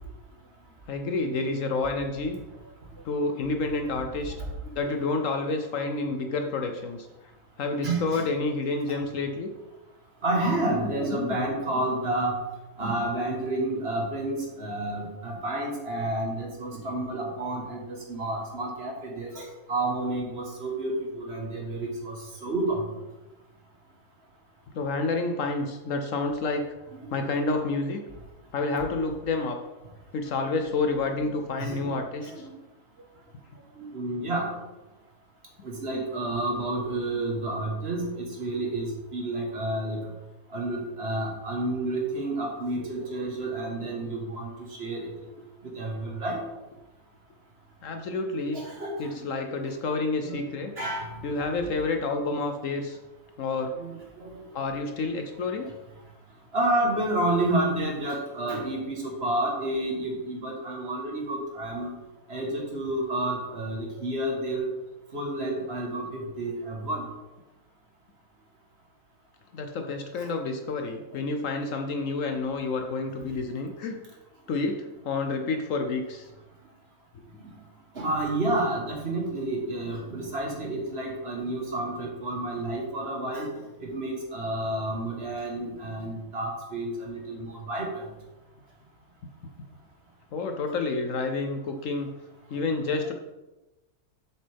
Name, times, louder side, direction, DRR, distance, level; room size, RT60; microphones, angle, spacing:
voice 1, 0.9-2.4 3.0-4.3 4.7-7.1 7.6-9.5 10.7-10.9 11.1-11.4 24.7-26.6 27.1-28.0 28.5-29.6 30.1-32.5 47.8-48.6 49.0-50.7 51.2-53.0 53.4-53.8 54.5-55.7 69.5-74.0 74.5-76.3 90.3-92.1 92.5-93.1, left 3 dB, 65° left, 5 dB, 1.0 m, -29 dB
voice 2, 7.8-8.2 10.2-12.3 12.8-22.8 31.2-31.3 31.6-32.5 33.8-34.5 35.6-40.0 40.5-44.5 44.8-45.1 45.7-46.4 48.5-48.9 50.2-50.4 50.8-51.2 51.6-51.7 53.8-54.6 56.5-61.9 62.3-64.7 65.1-67.0 77.4-77.5 77.9-83.5 83.8-88.1, right 2 dB, 45° right, 0 dB, 1.6 m, -30 dB
7.4 x 7.1 x 3.5 m, 1.1 s
omnidirectional pair, 1.6 m